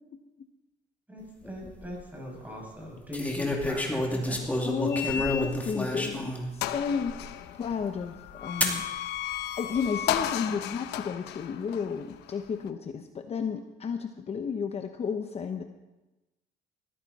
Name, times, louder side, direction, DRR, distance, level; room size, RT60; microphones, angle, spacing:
voice 1, 0.1-0.5 4.6-8.8 9.5-15.6, left 6 dB, 40° left, 6 dB, 0.9 m, -33 dB
voice 2, 1.1-4.5, equal, 10° right, -2 dB, 7.0 m, -40 dB
sound 1, 1.4-1.9 3.1-6.5 7.1-7.2 8.6-8.8 9.7-10.2, left 1 dB, 10° left, 2.5 m, -29 dB
sound 2, 4.9-5.8 6.2-6.3 6.6-12.7, left 12 dB, 85° left, 0.9 m, -35 dB
19.5 x 14.0 x 4.2 m, 1.1 s
cardioid pair, 110°, 17 cm